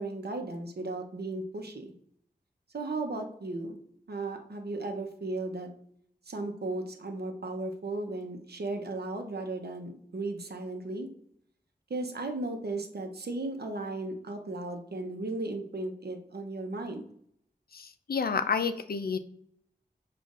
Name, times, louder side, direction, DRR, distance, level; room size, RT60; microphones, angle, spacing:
voice 1, 0.0-1.9 2.7-3.8 4.1-5.7 6.3-11.1 11.9-17.0, right 2 dB, 70° right, 4 dB, 0.8 m, -35 dB
voice 2, 17.7-19.2, left 5 dB, 65° left, 10 dB, 0.4 m, -30 dB
7.0 x 2.5 x 2.5 m, 0.67 s
wide cardioid pair, 70°, 17 cm